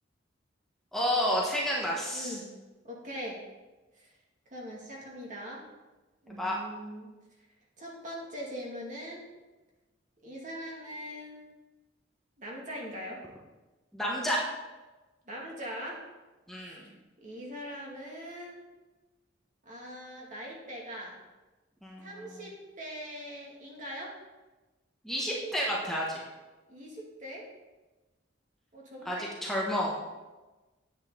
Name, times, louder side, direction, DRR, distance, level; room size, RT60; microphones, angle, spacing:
voice 1, 0.9-2.3 6.3-6.6 13.9-14.4 16.5-16.8 21.8-22.4 25.0-26.2 29.0-30.0, equal, ahead, -4 dB, 1.3 m, -30 dB
voice 2, 2.1-2.5 2.8-3.4 3.9-4.1 4.5-5.6 6.2-7.1 7.8-9.2 10.2-11.4 12.4-13.2 15.3-16.0 16.5-18.6 19.7-21.2 22.0-24.1 26.7-27.5 28.7-29.3, equal, 40° right, -3 dB, 2.3 m, -41 dB
9.6 x 8.3 x 3.9 m, 1.1 s
head